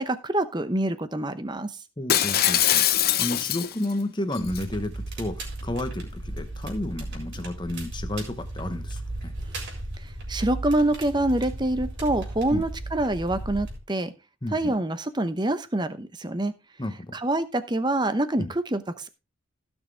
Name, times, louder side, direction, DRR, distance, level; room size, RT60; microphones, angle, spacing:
voice 1, 0.0-1.7 10.0-14.1 14.5-16.5 17.1-19.1, right 1 dB, 20° right, 12 dB, 0.8 m, -26 dB
voice 2, 2.0-9.3 12.5-12.6 14.4-14.7 16.8-17.1 18.4-18.5, left 1 dB, 20° left, 8 dB, 1.1 m, -32 dB
Shatter, 2.1-3.9 4.3-4.6, left 11 dB, 45° left, 0.7 m, -22 dB
Crackle, 4.4-13.8, right 1 dB, 55° right, 4.2 m, -35 dB
16.0 x 6.3 x 3.4 m, 0.27 s
head